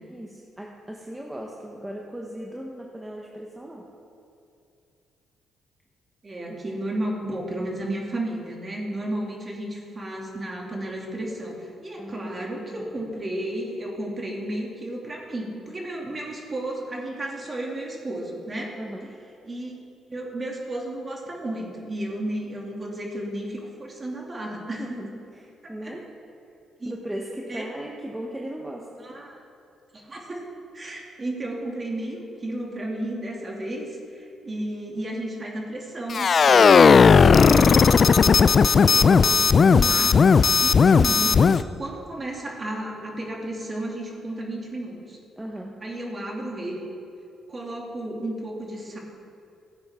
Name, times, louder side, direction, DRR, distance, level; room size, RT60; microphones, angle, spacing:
voice 1, 0.0-3.9 6.5-6.6 12.0-12.9 18.8-19.1 24.8-26.1 26.8-28.9 45.4-45.8, right 1 dB, 10° right, -1 dB, 1.1 m, -38 dB
voice 2, 6.2-18.7 19.4-19.7 20.1-25.0 25.6-25.9 26.8-27.0 27.5-27.6 29.0-29.4 29.9-30.4 30.7-38.1 38.8-45.2 45.8-46.9 47.5-49.0, right 1 dB, 30° right, -1 dB, 2.5 m, -33 dB
sound 1, 36.1-41.6, left 5 dB, 45° left, 0.3 m, -16 dB
16.0 x 8.8 x 3.7 m, 2.6 s
cardioid pair, 90°, 0 cm